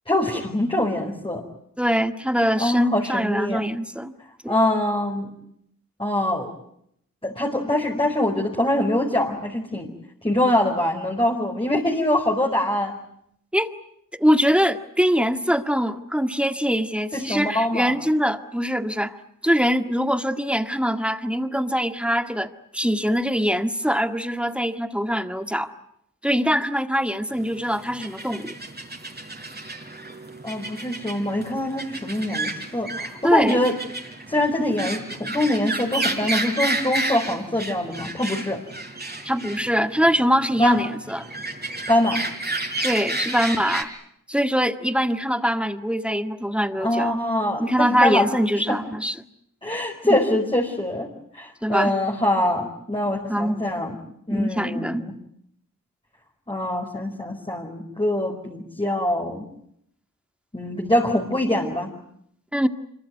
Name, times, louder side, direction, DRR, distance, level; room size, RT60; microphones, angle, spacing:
voice 1, 0.1-1.4 2.5-3.6 4.5-5.3 6.0-6.5 7.2-9.9 10.2-12.9 17.1-17.9 30.4-33.8 34.3-38.6 40.6-40.8 41.9-42.2 46.8-48.3 48.5-48.6 49.6-54.0 54.3-55.1 56.5-59.4 60.5-61.9, left 1 dB, 15° left, 0 dB, 4.5 m, -24 dB
voice 2, 1.8-4.1 4.4-4.5 13.5-13.7 14.1-19.2 19.4-25.7 26.2-28.5 33.2-33.6 39.2-41.3 42.8-43.9 44.3-47.1 47.6-49.1 51.6-51.9 53.3-53.6 54.3-55.0 62.5-62.7, equal, 5° right, 8 dB, 1.8 m, -23 dB
sound 1, 27.3-43.8, right 2 dB, 30° right, 4.5 m, -31 dB
25.5 x 23.0 x 9.2 m, 0.73 s
cardioid pair, 60°, 34 cm